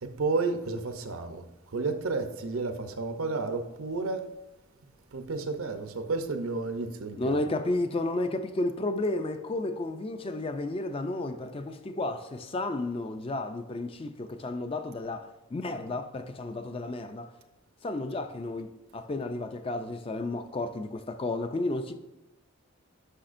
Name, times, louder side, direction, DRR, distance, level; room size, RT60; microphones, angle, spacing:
voice 1, 0.0-4.3 5.1-7.4, right 3 dB, 80° right, 0.7 m, -31 dB
voice 2, 7.2-17.3 17.8-21.9, left 2 dB, 25° left, 0.3 m, -32 dB
10.0 x 5.7 x 2.5 m
head